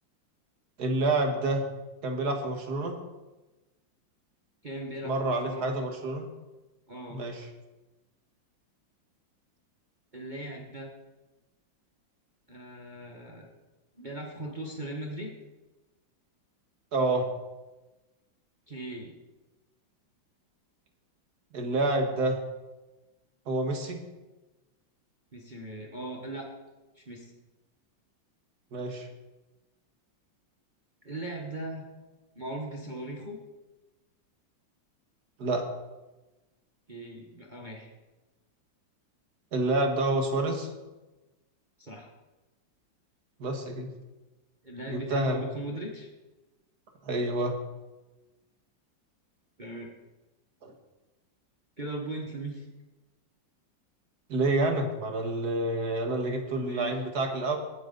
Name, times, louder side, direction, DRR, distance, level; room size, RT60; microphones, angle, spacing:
voice 1, 0.8-1.7 2.0-3.0 5.0-6.3 7.1-7.5 16.9-17.3 21.5-22.4 23.5-24.0 28.7-29.1 35.4-35.7 39.5-40.7 43.4-43.9 44.9-45.4 47.1-47.6 50.6-50.7 54.3-57.6, right 2 dB, 55° right, 4 dB, 2.0 m, -28 dB
voice 2, 4.6-5.7 6.9-7.2 10.1-10.9 12.5-13.5 14.0-15.3 18.7-19.2 25.3-26.5 26.9-27.3 31.0-31.8 32.3-33.4 36.9-37.9 41.8-42.1 44.6-46.1 49.6-49.9 51.8-52.7 56.6-57.0, right 1 dB, 25° right, -1 dB, 1.3 m, -39 dB
18.5 x 9.3 x 4.0 m, 1.1 s
omnidirectional pair, 2.1 m